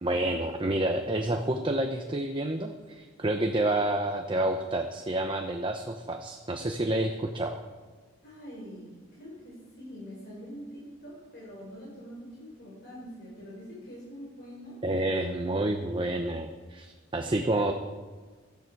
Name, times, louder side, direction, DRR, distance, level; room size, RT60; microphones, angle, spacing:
voice 1, 0.0-7.6 14.8-17.7, right 1 dB, 25° right, 4 dB, 0.8 m, -29 dB
voice 2, 8.2-14.8 17.3-17.5, equal, 60° left, -6 dB, 4.8 m, -44 dB
16.5 x 13.0 x 4.7 m, 1.4 s
head